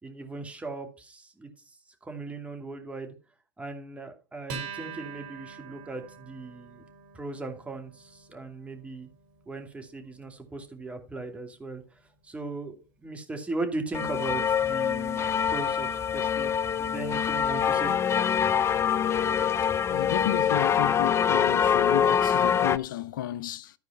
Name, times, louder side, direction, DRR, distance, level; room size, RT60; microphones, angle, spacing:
voice 1, 0.0-3.1 3.6-6.8 7.1-9.1 9.5-11.8 12.2-17.9, right 3 dB, 10° right, 2.5 m, -38 dB
Acoustic guitar, 4.5-11.3, right 5 dB, 65° right, 4.9 m, -45 dB
sound 1, 13.9-22.8, left 8 dB, 25° left, 0.5 m, -25 dB
voice 2, 19.9-23.7, left 13 dB, 75° left, 0.5 m, -33 dB
13.0 x 4.7 x 5.4 m
hypercardioid pair, 100°, 11 cm